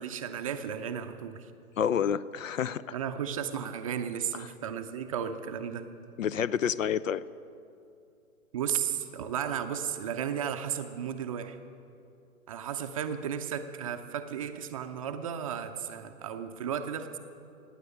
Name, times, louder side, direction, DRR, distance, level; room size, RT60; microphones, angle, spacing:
voice 1, 0.0-1.5 2.9-5.9 8.5-11.6 12.5-17.2, right 8 dB, 25° right, 7 dB, 0.6 m, -34 dB
voice 2, 1.8-2.8 6.2-7.2, left 8 dB, 60° left, 18 dB, 0.6 m, -28 dB
17.0 x 9.7 x 7.6 m, 2.6 s
figure-of-eight pair, 120°, 44 cm